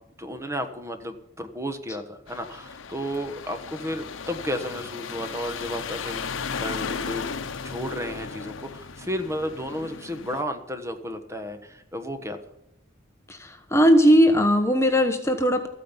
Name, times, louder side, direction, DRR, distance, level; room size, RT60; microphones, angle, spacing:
voice 1, 0.2-7.2 7.6-12.4, equal, 15° right, 8 dB, 1.2 m, -33 dB
sound 1, 2.3-10.4, left 5 dB, 80° left, 0.8 m, -35 dB
voice 2, 13.3-15.7, equal, 15° left, 6 dB, 1.0 m, -19 dB
14.0 x 9.4 x 7.2 m, 0.80 s
head